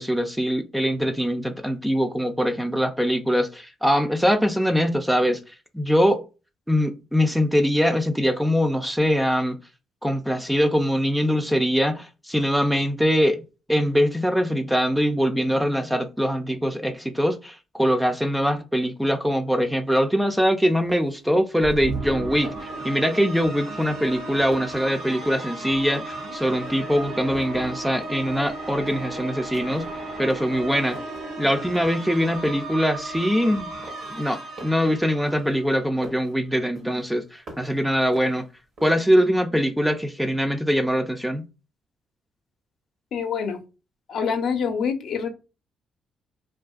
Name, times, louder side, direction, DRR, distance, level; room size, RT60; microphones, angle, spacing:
voice 1, 0.0-5.4 5.7-6.2 6.7-9.6 10.0-13.4 13.7-22.5 22.8-29.9 30.2-31.0 31.4-33.7 34.1-38.5 38.8-41.4, equal, 5° right, 0.4 m, -22 dB
sound 1, 20.4-20.5 20.9-21.3 21.6-22.0 22.3-22.8 23.1-23.4 23.8-25.7 25.9-27.0 27.3-28.5 28.9-29.1 29.5-29.9 30.3-31.2 31.7-32.1 32.4-33.5 33.8-36.3 36.7-37.8 38.1-39.2, right 1 dB, 60° right, 1.0 m, -45 dB
sound 2, 21.6-36.0, right 2 dB, 85° right, 0.9 m, -35 dB
voice 2, 43.1-43.6 44.1-45.3, left 6 dB, 70° left, 0.5 m, -26 dB
2.6 x 2.4 x 2.3 m
cardioid pair, 90°, 0 cm